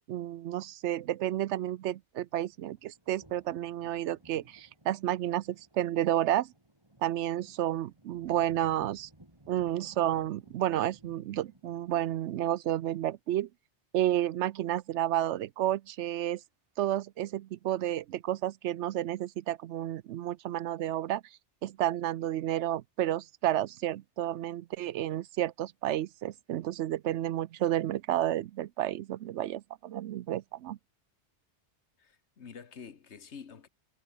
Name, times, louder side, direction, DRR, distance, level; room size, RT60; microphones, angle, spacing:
voice 1, 0.0-6.5 7.0-9.1 9.5-13.5 13.9-16.4 16.8-21.2 21.6-30.8, right 12 dB, 80° right, 0.9 m, -31 dB
sound 1, 2.3-12.6, right 1 dB, 20° right, 3.5 m, -60 dB
voice 2, 32.0-33.7, left 6 dB, 75° left, 1.6 m, -48 dB
omnidirectional pair, 1.2 m